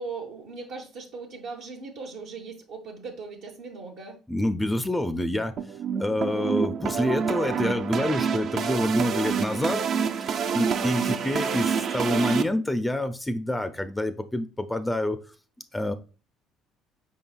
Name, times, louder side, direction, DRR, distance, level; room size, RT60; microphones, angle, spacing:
voice 1, 0.0-4.2 10.4-10.9, right 4 dB, 75° right, -1 dB, 0.7 m, -39 dB
voice 2, 4.3-5.5 6.0-9.8 10.5-15.2 15.7-15.9, left 1 dB, 10° left, 10 dB, 0.4 m, -27 dB
sound 1, 5.6-12.4, right 6 dB, 60° right, 0.4 m, -27 dB
5.0 x 3.9 x 2.3 m, 0.35 s
hypercardioid pair, 65°, 0 cm